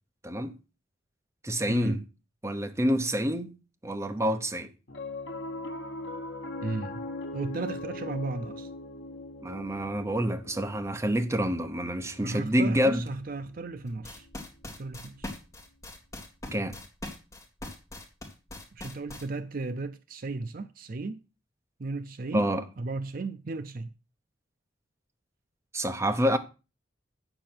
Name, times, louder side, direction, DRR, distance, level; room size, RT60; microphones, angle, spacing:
voice 1, 0.2-0.6 1.4-2.0 2.4-3.5 3.8-4.7 9.4-13.0 16.5-16.8 22.3-22.6 25.7-26.4, equal, 15° right, 0.8 m, -27 dB
voice 2, 1.7-2.0 6.6-7.0 7.3-8.7 12.2-14.3 14.7-15.3 18.7-21.2 21.8-22.5 22.8-23.9, right 3 dB, 45° right, 0.5 m, -35 dB
Piano, 4.9-15.4, left 2 dB, 65° left, 1.3 m, -41 dB
sound 1, 13.9-19.2, left 1 dB, 15° left, 2.2 m, -41 dB
8.6 x 6.9 x 5.9 m
head